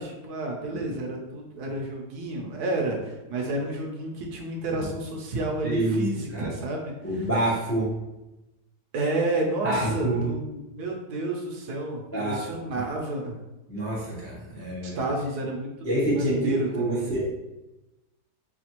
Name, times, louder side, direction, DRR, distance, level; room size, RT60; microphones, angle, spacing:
voice 1, 0.0-7.2 8.9-13.3 14.8-15.7 16.1-17.0, right 2 dB, 70° right, 0 dB, 1.2 m, -30 dB
voice 2, 5.6-6.0 6.3-6.5 7.0-7.9 9.6-10.3 12.1-12.3 13.7-15.0 15.8-17.3, right 1 dB, 15° left, -5 dB, 0.4 m, -27 dB
4.9 x 2.3 x 2.9 m, 1.0 s
omnidirectional pair, 1.8 m